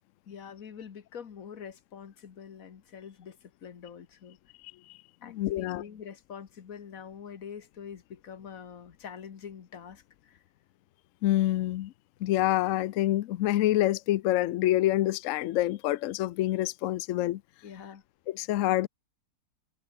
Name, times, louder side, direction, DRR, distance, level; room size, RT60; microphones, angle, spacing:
voice 1, 0.2-4.4 5.2-10.4 17.6-18.0, left 7 dB, 55° left, 1.7 m, -45 dB
voice 2, 5.2-5.8 11.2-11.9 12.2-17.4 18.3-18.9, left 14 dB, 75° left, 0.7 m, -27 dB
omnidirectional pair, 1.8 m